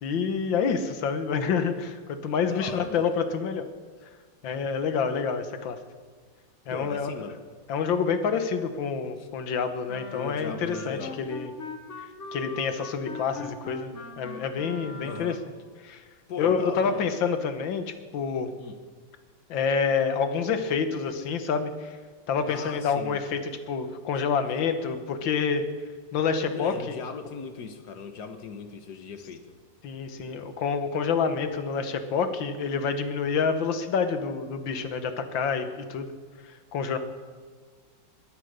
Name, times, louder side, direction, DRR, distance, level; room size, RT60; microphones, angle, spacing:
voice 1, 0.0-3.7 4.4-5.8 6.7-7.1 7.7-11.5 12.0-15.4 15.8-16.0 16.4-18.5 19.5-22.0 22.3-25.7 26.1-27.0 29.8-36.1 36.4-37.0, left 6 dB, 80° left, 9 dB, 1.9 m, -28 dB
voice 2, 2.5-3.1 6.7-7.4 9.2-9.3 10.1-11.2 15.0-15.4 16.3-17.1 18.6-18.8 22.5-23.2 26.5-29.4, left 5 dB, 60° left, 8 dB, 1.6 m, -38 dB
Wind instrument woodwind instrument, 9.9-15.5, left 4 dB, 40° left, 1.5 m, -41 dB
21.5 x 8.2 x 6.7 m, 1.5 s
omnidirectional pair, 2.0 m